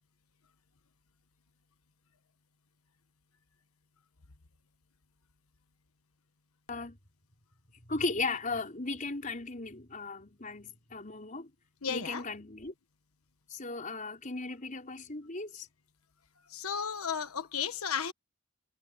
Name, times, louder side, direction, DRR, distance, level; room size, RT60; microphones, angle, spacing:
voice 1, 7.8-11.5 11.9-12.7 13.5-15.7, left 3 dB, 35° left, 4.8 m, -36 dB
voice 2, 11.8-12.2 16.5-18.1, left 7 dB, 85° left, 1.3 m, -33 dB
head